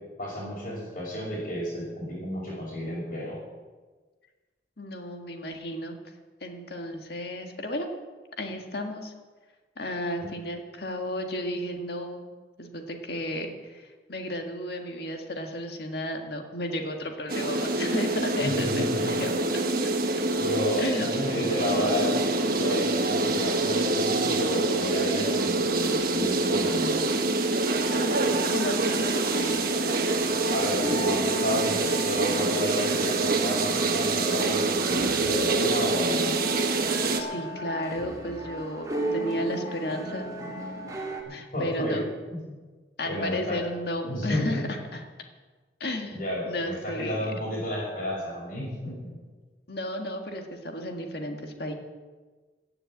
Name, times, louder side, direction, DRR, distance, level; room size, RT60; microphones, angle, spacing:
voice 1, 0.2-3.4 10.2-10.3 18.4-19.1 20.4-27.0 30.5-36.3 41.5-42.0 42.3-42.5 43.0-43.6 44.1-44.6 46.1-49.1, equal, 45° left, -8 dB, 5.4 m, -31 dB
voice 2, 4.8-6.0 6.4-7.9 8.4-9.1 9.8-12.3 12.6-19.3 20.8-21.1 28.0-28.2 28.5-29.6 37.2-40.3 41.3-42.1 43.0-45.1 45.8-47.3 49.7-51.7, left 1 dB, 60° left, 3 dB, 1.8 m, -33 dB
sound 1, 17.3-37.2, right 3 dB, 55° right, 1.2 m, -26 dB
sound 2, 27.7-41.2, right 1 dB, 20° right, 2.1 m, -36 dB
15.5 x 7.0 x 8.7 m, 1.4 s
head